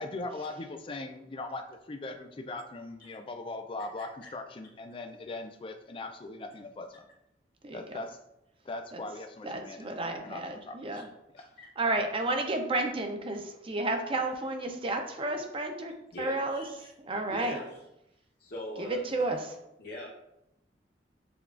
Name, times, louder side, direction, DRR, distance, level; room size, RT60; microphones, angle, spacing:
voice 1, 0.0-7.1 7.7-8.2 8.6-10.0 10.2-11.0 12.0-12.1, left 2 dB, 30° left, 6 dB, 0.4 m, -40 dB
voice 2, 7.6-8.0 8.9-9.0 9.4-11.1 11.8-16.6 17.0-17.6 18.8-19.6, right 2 dB, 30° right, 4 dB, 0.5 m, -32 dB
voice 3, 16.1-16.9 17.3-17.6 18.4-19.0 19.8-20.1, left 1 dB, 60° left, -5 dB, 0.8 m, -41 dB
6.8 x 2.4 x 2.4 m, 0.84 s
head